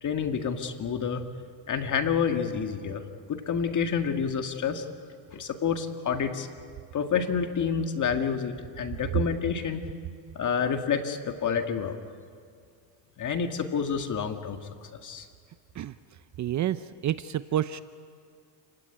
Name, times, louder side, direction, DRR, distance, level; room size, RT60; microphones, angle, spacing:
voice 1, 0.0-1.2 1.7-3.0 3.3-4.9 5.3-6.5 6.9-9.9 10.4-12.0 13.2-15.3, left 6 dB, 40° left, 6 dB, 1.9 m, -28 dB
voice 2, 16.4-17.8, right 11 dB, 40° right, 13 dB, 0.7 m, -29 dB
29.5 x 16.5 x 10.0 m, 2.2 s
supercardioid pair, 105°, 45 cm